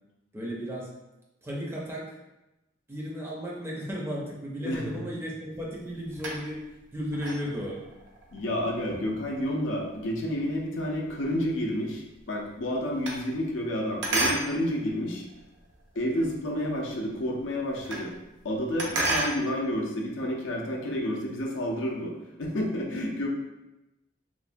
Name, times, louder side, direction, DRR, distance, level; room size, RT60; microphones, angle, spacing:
voice 1, 0.3-0.9 1.4-2.1 2.9-6.6 6.9-7.8, equal, 15° right, -4 dB, 0.4 m, -34 dB
sound 1, 5.5-6.7 7.1-11.7 12.0-13.7 14.0-16.1 16.5-16.6 16.9-17.0 17.2-18.2 18.4-19.4, right 1 dB, 70° right, 0.5 m, -33 dB
voice 2, 8.3-15.2 16.0-18.1 18.4-23.3, equal, 80° left, 0 dB, 0.5 m, -30 dB
3.0 x 2.1 x 2.5 m, 0.97 s
head